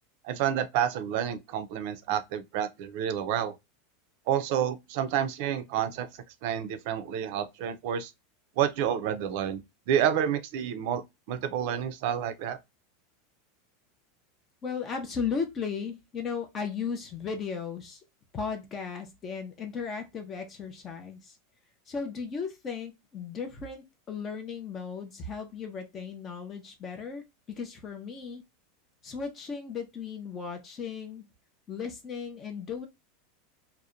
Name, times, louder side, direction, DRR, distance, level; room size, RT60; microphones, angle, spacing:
voice 1, 0.2-3.5 4.3-6.1 6.4-8.1 8.6-9.6 9.9-11.0 11.3-12.6, right 9 dB, 55° right, 0.4 m, -29 dB
voice 2, 14.6-18.0 18.3-21.4 21.9-28.4 29.0-31.3 31.7-32.9, left 6 dB, 25° left, 0.4 m, -36 dB
2.7 x 2.1 x 2.3 m
supercardioid pair, 155°, 0 cm